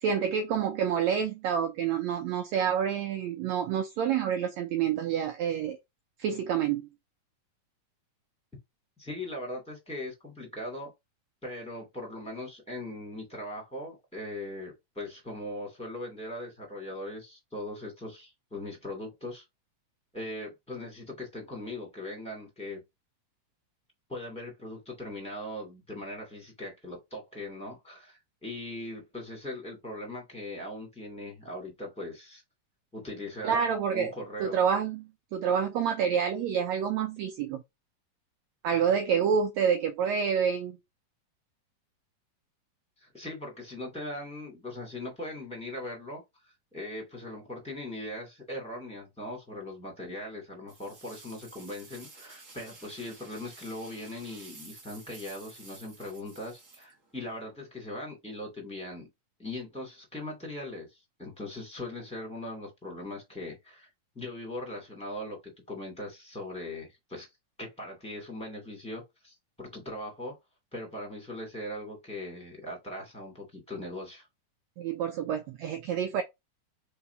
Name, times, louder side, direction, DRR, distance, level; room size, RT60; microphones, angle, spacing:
voice 1, 0.0-5.8 6.2-6.9 33.4-34.1 34.4-37.6 38.6-40.8 74.8-76.2, right 7 dB, 85° right, 1.5 m, -28 dB
voice 2, 9.0-10.9 11.4-19.4 20.1-22.8 24.1-32.4 32.9-34.6 43.0-59.1 59.4-63.9 64.1-67.3 67.6-70.4 70.7-74.3, left 1 dB, ahead, 1.6 m, -40 dB
sound 1, 50.7-57.4, right 3 dB, 60° right, 0.8 m, -52 dB
4.6 x 3.9 x 2.7 m
omnidirectional pair, 3.8 m